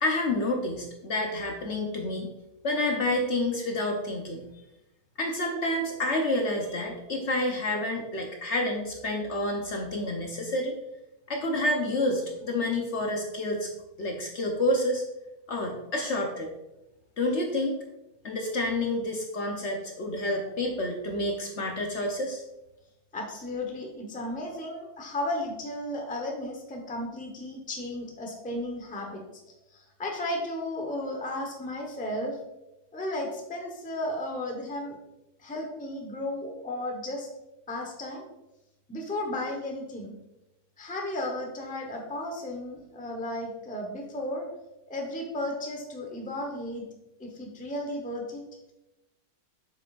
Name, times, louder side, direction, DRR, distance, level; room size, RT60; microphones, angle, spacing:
voice 1, 0.0-2.3 2.6-4.4 5.2-10.7 11.3-13.7 14.0-15.0 15.5-16.5 17.2-17.8 18.2-22.4, left 1 dB, 55° left, 2 dB, 1.0 m, -29 dB
voice 2, 23.1-29.2 29.7-32.4 32.9-35.0 35.4-37.3 37.7-38.2 38.9-40.1 40.8-44.5 44.9-46.8 47.2-48.4, left 1 dB, 5° left, 1 dB, 0.8 m, -34 dB
7.5 x 5.9 x 2.4 m, 0.94 s
omnidirectional pair, 1.6 m